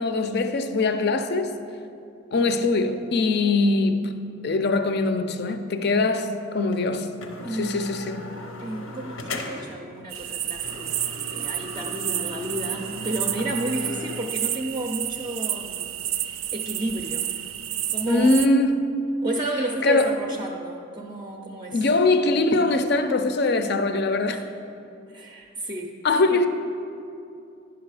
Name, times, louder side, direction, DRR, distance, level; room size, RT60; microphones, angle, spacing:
voice 1, 0.0-1.5 2.3-4.1 4.4-7.1 7.5-8.3 18.1-19.0 19.8-20.2 21.7-24.4 26.0-26.5, left 2 dB, 55° left, 0.5 m, -22 dB
sound 1, 6.7-6.8 7.2-9.8 10.1-10.3 10.6-14.3, left 2 dB, 85° left, 0.8 m, -38 dB
voice 2, 7.4-7.8 8.6-15.9 16.2-17.3 17.9-18.4 19.2-21.9 24.3-24.4 25.1-26.0 26.3-26.4, right 1 dB, 20° right, 0.4 m, -31 dB
sound 2, 10.1-18.5, right 12 dB, 85° right, 0.4 m, -30 dB
10.0 x 5.9 x 4.8 m
head